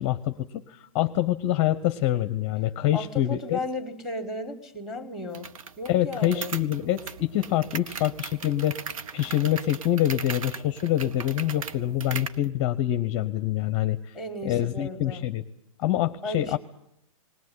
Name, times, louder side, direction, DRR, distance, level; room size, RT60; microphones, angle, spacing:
voice 1, 0.0-3.6 5.9-8.8 9.1-14.1 14.4-15.4 15.8-16.6, left 13 dB, 30° left, 11 dB, 0.8 m, -26 dB
voice 2, 2.9-5.5 5.8-6.5 14.1-15.2 16.2-16.6, left 2 dB, ahead, 7 dB, 2.2 m, -35 dB
sound 1, 5.3-12.4, right 6 dB, 65° right, 1.2 m, -38 dB
20.5 x 17.5 x 9.6 m, 0.74 s
hypercardioid pair, 150°, 18 cm